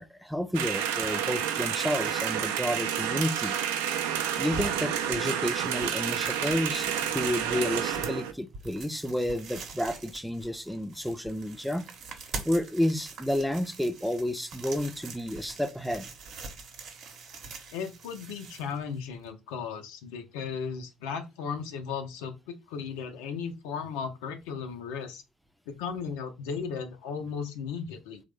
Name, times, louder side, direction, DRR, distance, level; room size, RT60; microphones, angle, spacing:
voice 1, 0.0-3.6 4.4-11.9 12.4-16.1, left 1 dB, ahead, 0.4 m, -30 dB
sound 1, 0.5-8.3, right 9 dB, 75° right, 0.3 m, -30 dB
sound 2, 4.2-19.3, right 3 dB, 55° right, 0.8 m, -44 dB
voice 2, 17.7-25.2 25.7-28.2, left 6 dB, 70° left, 0.4 m, -36 dB
3.1 x 2.0 x 3.3 m
figure-of-eight pair, 55°, 0 cm